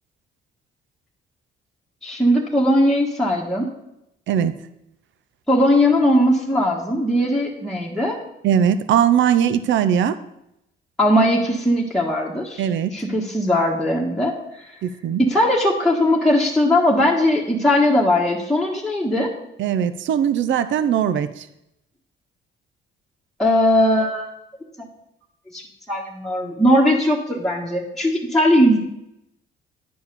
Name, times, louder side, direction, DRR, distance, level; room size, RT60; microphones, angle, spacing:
voice 1, 2.0-3.7 5.5-8.2 11.0-14.3 15.2-19.3 23.4-24.3 25.5-25.6 25.9-28.8, left 1 dB, ahead, -4 dB, 1.5 m, -19 dB
voice 2, 8.4-10.2 12.6-12.9 14.8-15.2 19.6-21.5, right 9 dB, 70° right, 13 dB, 0.6 m, -20 dB
10.0 x 4.7 x 6.8 m, 0.83 s
cardioid pair, 90°, 20 cm